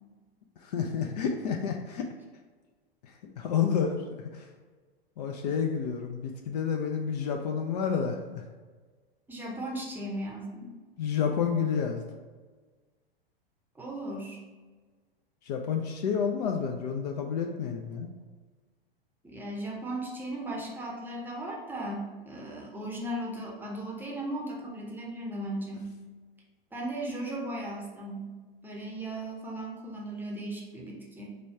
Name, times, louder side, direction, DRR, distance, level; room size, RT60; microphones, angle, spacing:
voice 1, 0.6-2.1 3.2-4.0 4.3-4.4 5.2-8.4 11.0-12.0 15.5-18.1, left 7 dB, 45° left, 4 dB, 0.4 m, -29 dB
voice 2, 9.3-10.7 13.7-14.4 19.2-25.8 26.7-28.3 28.6-31.4, right 1 dB, 5° right, -2 dB, 0.7 m, -37 dB
5.0 x 2.3 x 4.3 m, 1.4 s
figure-of-eight pair, 95°, 30 cm